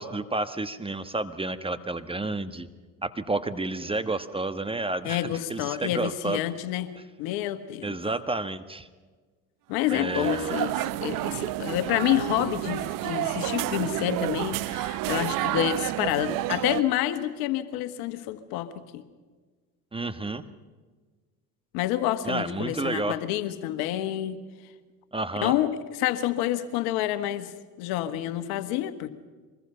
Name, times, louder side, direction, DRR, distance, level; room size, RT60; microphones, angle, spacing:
voice 1, 0.0-2.7 3.0-6.4 7.8-8.9 9.9-10.6 19.9-20.4 22.2-23.2 25.1-25.5, right 2 dB, 15° right, 11 dB, 1.3 m, -30 dB
voice 2, 5.0-6.9 7.2-7.9 9.7-19.0 21.7-24.4 25.4-27.5 27.8-29.1, left 13 dB, 70° left, 11 dB, 1.6 m, -28 dB
sound 1, 9.8-16.8, right 17 dB, 55° right, 0.7 m, -30 dB
25.0 x 21.0 x 5.7 m, 1.4 s
hypercardioid pair, 80°, 39 cm